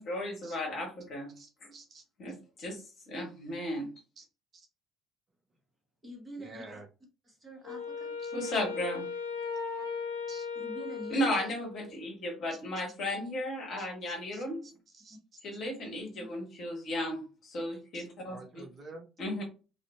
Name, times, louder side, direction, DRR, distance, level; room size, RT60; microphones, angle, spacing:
voice 1, 0.0-1.7 2.2-3.9 8.3-9.1 11.1-14.6 15.4-18.6 19.2-19.4, left 1 dB, 50° left, 0 dB, 1.1 m, -35 dB
voice 2, 1.4-2.0 4.2-4.3 4.5-4.7 6.4-6.9 8.2-8.3 10.3-10.5 13.8-15.4 17.9-18.0 18.3-19.1, right 2 dB, 40° right, 3 dB, 0.6 m, -50 dB
voice 3, 6.0-6.8 7.3-8.2 10.5-11.3 15.1-15.2 16.1-16.3, equal, 20° right, 1 dB, 1.2 m, -45 dB
Wind instrument woodwind instrument, 7.6-12.0, left 5 dB, 75° left, 0.4 m, -37 dB
2.5 x 2.4 x 2.3 m, 0.32 s
figure-of-eight pair, 50°, 0 cm